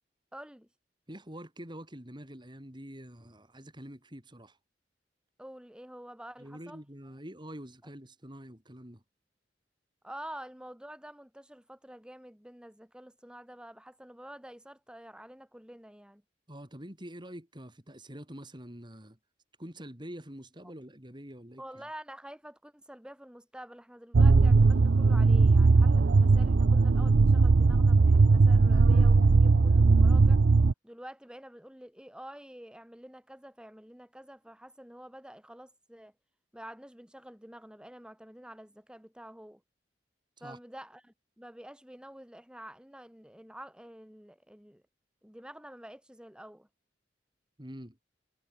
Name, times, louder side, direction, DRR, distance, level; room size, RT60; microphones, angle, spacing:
voice 1, 0.3-0.7 5.4-6.8 10.0-16.2 20.6-20.7 21.6-30.4 30.8-36.1 36.5-39.6 40.4-44.8 45.2-46.7, right 1 dB, 5° right, 3.0 m, -48 dB
voice 2, 1.1-4.6 6.4-9.0 16.5-19.2 19.6-21.8 40.4-40.6 47.6-48.0, equal, 25° right, 5.7 m, -46 dB
sound 1, 24.1-30.7, right 4 dB, 90° right, 0.6 m, -20 dB
head